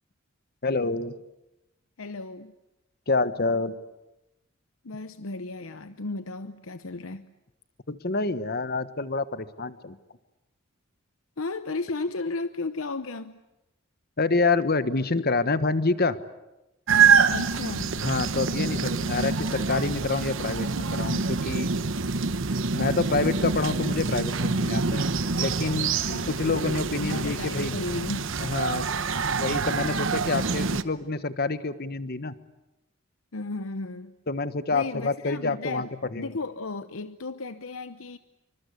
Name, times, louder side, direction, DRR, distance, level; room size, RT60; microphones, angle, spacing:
voice 1, 0.6-1.1 3.1-3.7 7.9-10.0 14.2-16.2 18.0-21.7 22.7-25.1 25.3-25.9 26.3-27.8 28.4-28.8 29.4-32.3 34.3-36.3, left 3 dB, 50° left, 1.3 m, -27 dB
voice 2, 2.0-2.5 4.8-7.3 11.4-13.4 17.3-18.0 26.1-26.3 27.0-28.3 33.3-34.2 34.7-38.2, left 3 dB, 85° left, 0.9 m, -34 dB
sound 1, 16.9-30.8, right 5 dB, 65° right, 1.1 m, -26 dB
27.5 x 25.0 x 8.4 m
head